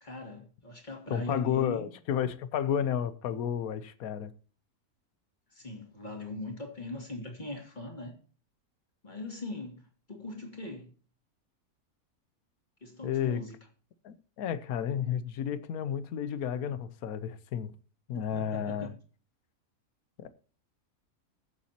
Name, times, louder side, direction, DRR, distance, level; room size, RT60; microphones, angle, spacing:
voice 1, 0.0-1.9 5.5-8.2 9.0-10.9 12.8-13.5 18.1-19.0, left 2 dB, 30° left, 2.7 m, -40 dB
voice 2, 1.1-4.3 13.0-13.4 14.0-17.7 18.1-18.9 20.2-20.3, left 9 dB, 80° left, 1.3 m, -32 dB
21.0 x 7.1 x 2.8 m
omnidirectional pair, 1.5 m